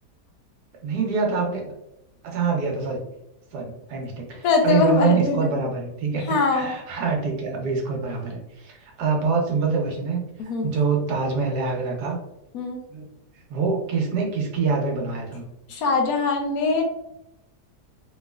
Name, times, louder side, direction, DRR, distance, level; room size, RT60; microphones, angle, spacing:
voice 1, 0.8-1.7 2.2-3.0 3.5-10.2 10.6-12.2 12.9-13.1 13.5-15.4, right 5 dB, 75° right, 0 dB, 1.4 m, -25 dB
voice 2, 4.4-5.6 6.3-6.8 10.4-10.7 12.5-12.8 15.7-16.8, left 4 dB, 70° left, 2 dB, 1.0 m, -22 dB
3.4 x 3.1 x 2.3 m, 0.86 s
omnidirectional pair, 1.8 m